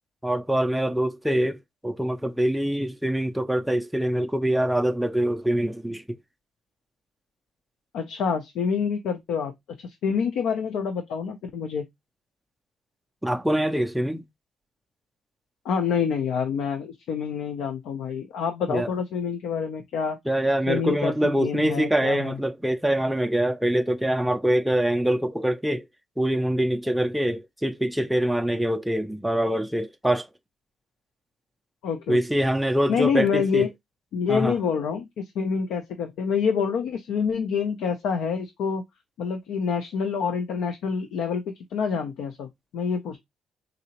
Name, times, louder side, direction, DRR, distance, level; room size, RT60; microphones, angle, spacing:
voice 1, 0.2-1.6 1.8-6.0 13.2-14.2 18.7-18.9 20.3-25.9 26.2-30.3 32.1-33.7 34.3-34.5, right 1 dB, 5° right, 0.4 m, -24 dB
voice 2, 7.9-9.5 9.8-11.8 15.6-20.2 20.7-22.4 31.8-32.2 32.9-33.7 34.1-38.8 39.2-43.2, left 6 dB, 80° left, 0.5 m, -27 dB
3.9 x 2.8 x 2.9 m
cardioid pair, 110°, 0 cm